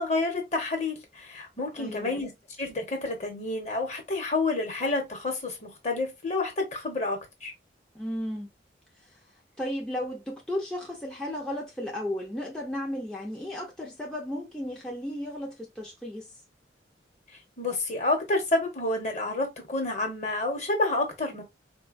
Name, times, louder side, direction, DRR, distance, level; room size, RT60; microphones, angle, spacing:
voice 1, 0.0-2.3 2.6-7.5 17.6-21.4, left 2 dB, 40° left, 1.0 m, -29 dB
voice 2, 1.8-2.2 7.9-8.5 9.6-16.3, left 1 dB, 5° left, 0.5 m, -34 dB
3.8 x 2.2 x 2.4 m
head